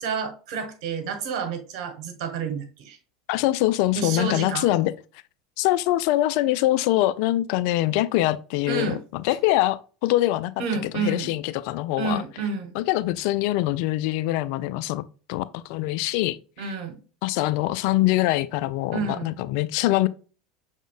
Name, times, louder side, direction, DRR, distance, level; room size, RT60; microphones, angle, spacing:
voice 1, 0.0-3.0 3.9-4.7 8.7-9.0 10.6-11.3 12.0-12.7 16.6-17.0 18.9-19.3, right 5 dB, 65° right, 1.3 m, -29 dB
voice 2, 3.3-4.9 5.6-10.5 10.8-12.2 12.7-15.0 15.3-16.7 17.2-20.1, left 16 dB, 60° left, 0.4 m, -24 dB
6.1 x 3.6 x 2.4 m
hypercardioid pair, 80°, 3 cm